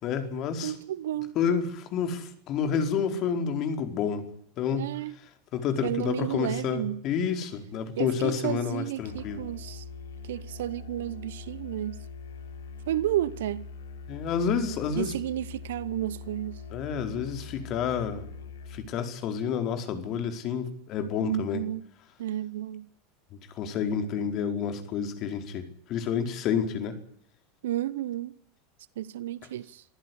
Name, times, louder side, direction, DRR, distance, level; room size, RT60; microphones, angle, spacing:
voice 1, 0.0-0.7 1.3-4.2 4.6-4.9 5.5-9.4 14.1-15.1 16.7-18.2 18.7-21.6 23.6-27.0, left 7 dB, 45° left, 4.7 m, -29 dB
voice 2, 0.6-1.4 4.7-5.2 5.8-7.0 8.0-9.8 10.2-12.0 12.9-13.7 15.0-16.6 21.2-21.8 22.2-22.9 27.6-28.3 29.0-29.8, right 13 dB, 70° right, 0.9 m, -32 dB
Musical instrument, 9.0-18.9, left 4 dB, 75° left, 3.1 m, -42 dB
25.5 x 15.0 x 9.7 m
hypercardioid pair, 85°, 0 cm